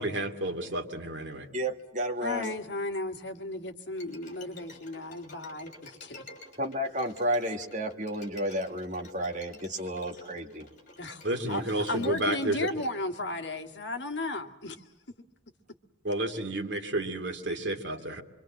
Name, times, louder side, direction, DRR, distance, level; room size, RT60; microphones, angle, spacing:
voice 1, 0.0-1.5 11.2-12.7 16.0-18.2, right 1 dB, 65° right, 5 dB, 2.8 m, -31 dB
voice 2, 1.5-2.5 6.6-10.7, equal, 40° right, 5 dB, 1.9 m, -32 dB
voice 3, 2.2-6.2 11.0-11.2 11.5-14.8, left 2 dB, 65° left, 5 dB, 1.8 m, -35 dB
Bowed string instrument, 3.9-12.9, left 2 dB, 40° left, 6.0 m, -51 dB
26.0 x 24.5 x 7.6 m, 1.0 s
head